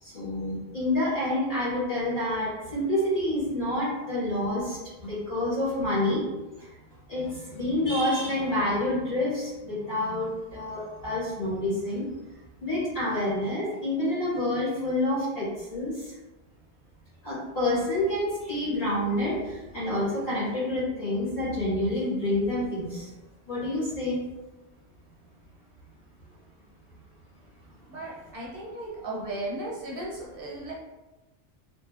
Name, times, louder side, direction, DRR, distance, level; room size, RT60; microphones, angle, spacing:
voice 1, 0.0-6.3 6.6-6.7 7.1-12.1 12.6-16.1 17.2-23.1 23.5-24.2, left 1 dB, 60° left, -9 dB, 1.6 m, -28 dB
voice 2, 27.9-30.7, right 1 dB, 60° right, -4 dB, 0.8 m, -36 dB
3.2 x 2.4 x 2.3 m, 1.1 s
omnidirectional pair, 1.1 m